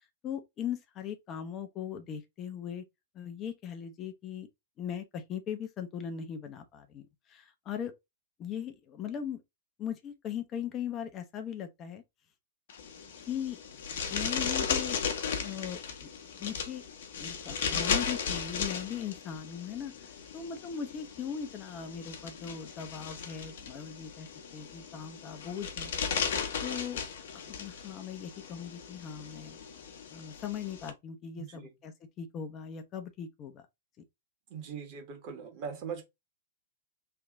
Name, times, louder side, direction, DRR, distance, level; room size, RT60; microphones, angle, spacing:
voice 1, 0.2-2.8 3.1-4.5 4.8-7.9 8.4-9.4 9.8-12.0 13.3-13.6 14.1-15.0 15.4-16.1 16.4-16.8 17.2-25.9 26.3-27.0 27.3-29.6 30.1-33.6, left 8 dB, 30° left, 0.7 m, -39 dB
sound 1, 12.7-30.9, left 6 dB, 60° left, 1.0 m, -36 dB
voice 2, 31.4-31.7 34.5-36.0, right 6 dB, 40° right, 1.6 m, -40 dB
3.4 x 2.8 x 3.6 m
figure-of-eight pair, 100°, 0 cm